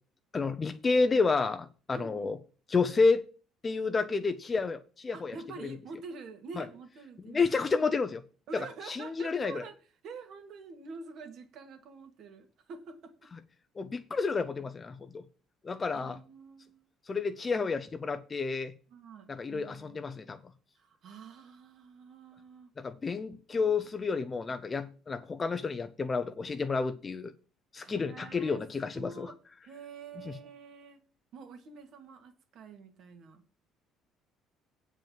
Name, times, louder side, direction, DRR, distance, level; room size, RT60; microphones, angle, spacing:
voice 1, 0.3-2.4 2.7-3.2 3.6-5.4 6.6-6.7 7.3-8.2 8.5-9.6 13.8-15.2 15.6-16.2 17.1-18.7 19.3-20.4 22.8-27.3 27.7-29.3, left 4 dB, 20° left, 0.6 m, -30 dB
voice 2, 1.9-2.3 5.1-7.5 8.5-13.3 15.9-16.9 18.9-20.0 20.8-22.7 27.8-29.4 29.6-31.0 31.3-33.4, right 4 dB, 55° right, 2.2 m, -47 dB
8.8 x 5.3 x 7.6 m
cardioid pair, 150°, 0 cm